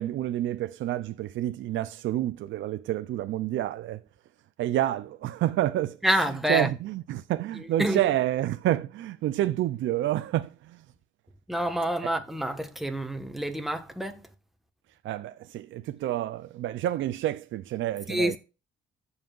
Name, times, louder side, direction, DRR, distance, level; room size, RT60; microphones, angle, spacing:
voice 1, 0.0-4.0 4.6-6.0 6.5-10.8 12.0-12.1 15.0-18.4, right 13 dB, 75° right, 0.5 m, -29 dB
voice 2, 6.0-6.7 7.8-8.0 11.5-14.2 18.1-18.4, right 1 dB, ahead, 1.4 m, -27 dB
14.5 x 5.6 x 2.5 m
cardioid pair, 90°, 20 cm